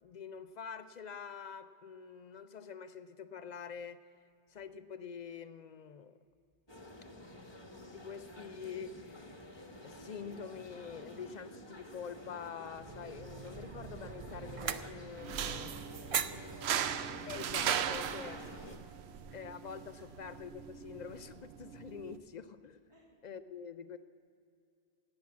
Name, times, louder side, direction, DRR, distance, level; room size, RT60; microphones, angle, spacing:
voice 1, 0.0-4.1 4.5-6.2 7.9-9.4 9.8-15.8 17.3-18.4 18.6-18.7 19.3-22.8 23.2-24.0, left 6 dB, 55° left, 12 dB, 0.5 m, -46 dB
sound 1, 6.7-18.8, left 1 dB, 25° left, 1.1 m, -51 dB
sound 2, 12.7-18.1, right 7 dB, 55° right, 0.4 m, -42 dB
sound 3, 15.2-22.2, right 9 dB, 90° right, 0.9 m, -38 dB
voice 2, 15.5-17.0 18.0-18.5 18.9-19.3 19.9-20.1 22.9-23.1, equal, 30° right, -3 dB, 3.2 m, -56 dB
11.5 x 8.8 x 8.5 m, 2.5 s
omnidirectional pair, 1.0 m